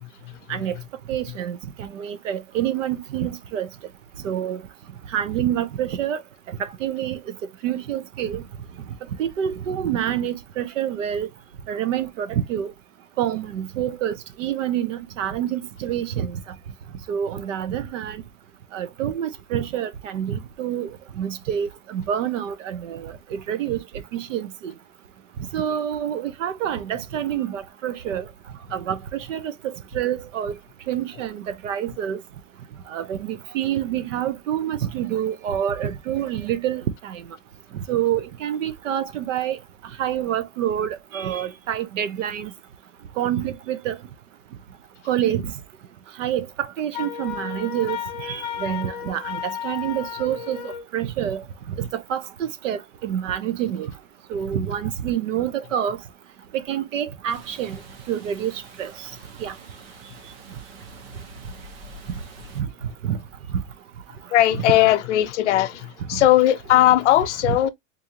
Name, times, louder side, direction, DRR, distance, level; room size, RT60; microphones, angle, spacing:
voice 1, 0.0-0.8 64.3-67.7, left 13 dB, 65° left, 0.7 m, -19 dB
voice 2, 1.1-3.7 4.2-4.6 5.1-6.2 6.8-7.2 7.6-8.4 9.2-11.3 11.7-12.7 13.2-16.4 17.1-18.2 18.7-20.9 21.2-23.8 24.1-24.7 25.5-28.3 28.7-30.5 30.9-32.2 32.9-37.2 37.7-39.6 40.0-42.5 43.2-44.0 45.1-45.5 46.2-51.4 51.7-53.9 54.3-56.0 56.5-57.8 58.1-58.5 58.8-59.1 59.4-59.5 62.6-62.7 63.0-63.2 66.1-66.2, right 10 dB, 75° right, 0.7 m, -27 dB
Wind instrument woodwind instrument, 46.9-50.9, left 9 dB, 35° left, 0.5 m, -33 dB
sound 1, 57.3-62.6, right 2 dB, 50° right, 1.1 m, -45 dB
3.7 x 2.6 x 2.8 m
supercardioid pair, 165°, 38 cm